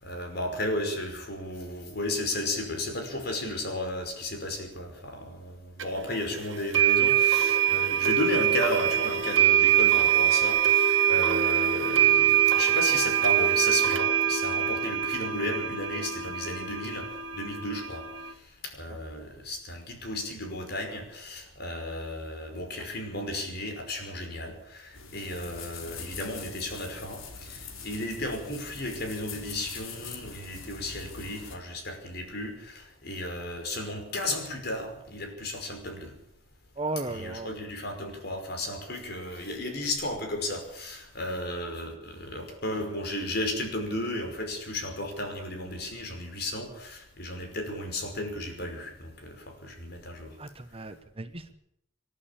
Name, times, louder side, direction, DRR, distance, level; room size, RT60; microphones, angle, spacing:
voice 1, 0.0-17.1 17.3-18.0 18.6-36.1 37.1-50.3, left 1 dB, 50° left, 4 dB, 5.4 m, -34 dB
sound 1, 5.8-5.9 6.7-18.3, right 9 dB, 65° right, 1.8 m, -24 dB
sound 2, 24.9-31.6, left 4 dB, 85° left, 3.3 m, -43 dB
voice 2, 36.8-37.5 50.4-51.5, right 2 dB, 30° right, 9 dB, 1.1 m, -35 dB
27.0 x 11.5 x 8.7 m, 0.76 s
head